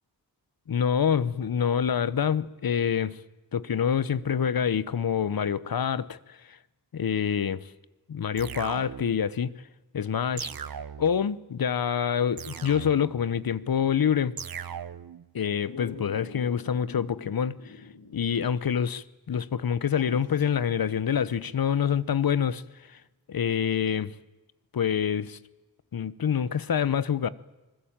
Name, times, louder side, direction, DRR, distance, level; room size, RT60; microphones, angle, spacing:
voice 1, 0.7-3.2 3.5-6.6 6.9-7.7 8.1-9.5 9.9-10.5 11.0-14.3 15.3-17.5 18.1-22.6 22.9-23.0 23.3-24.1 24.7-25.4 25.9-27.3, left 8 dB, 65° left, 1.0 m, -26 dB
sound 1, 8.4-9.3 10.4-11.3 12.4-13.3 14.4-15.3, right 8 dB, 65° right, 1.0 m, -38 dB
Dog, 15.7-18.4 18.7-18.8 19.9-20.5 22.6-22.7, left 4 dB, 85° left, 3.7 m, -45 dB
26.5 x 21.0 x 8.9 m
wide cardioid pair, 100°, 38 cm